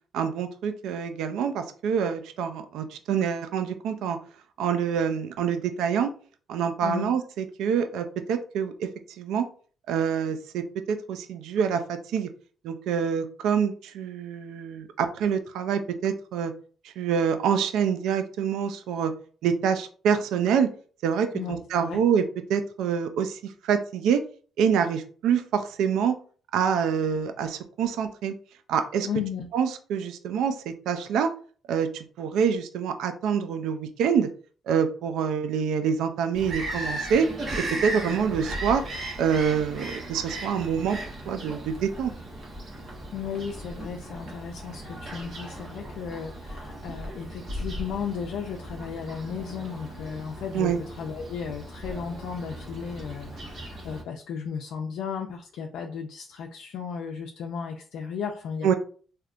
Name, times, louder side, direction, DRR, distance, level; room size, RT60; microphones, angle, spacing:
voice 1, 0.1-4.2 4.6-6.1 6.5-8.9 9.2-9.5 9.9-12.3 12.6-16.5 16.8-19.1 19.4-20.7 21.0-22.2 22.5-24.2 24.6-26.2 26.5-28.3 28.7-29.1 29.5-31.3 31.7-34.3 34.7-37.3 37.6-38.8 39.2-41.0 41.3-42.1 50.5-50.8 58.6-58.7, right 7 dB, 85° right, 8 dB, 0.4 m, -26 dB
voice 2, 6.8-7.1 21.3-22.0 29.0-29.5 43.1-58.7, left 6 dB, 80° left, 1 dB, 0.4 m, -35 dB
Bird vocalization bird call bird song, 36.3-54.0, right 1 dB, 55° right, 1.1 m, -37 dB
3.4 x 2.7 x 2.4 m, 0.42 s
cardioid pair, 90°, 0 cm